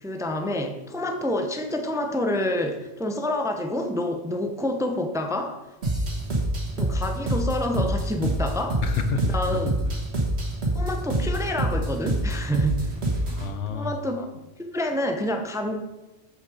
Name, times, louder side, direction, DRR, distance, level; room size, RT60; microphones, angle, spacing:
voice 1, 0.0-5.6 6.8-8.8 9.3-9.7 10.7-12.9 13.7-14.3 14.6-15.8, left 1 dB, 5° right, 5 dB, 0.6 m, -28 dB
sound 1, 5.8-13.5, right 1 dB, 70° right, 1.8 m, -26 dB
voice 2, 8.8-10.0 10.4-10.6 13.2-13.9, left 5 dB, 85° left, 8 dB, 1.2 m, -30 dB
7.5 x 6.5 x 4.8 m, 1.0 s
omnidirectional pair, 1.2 m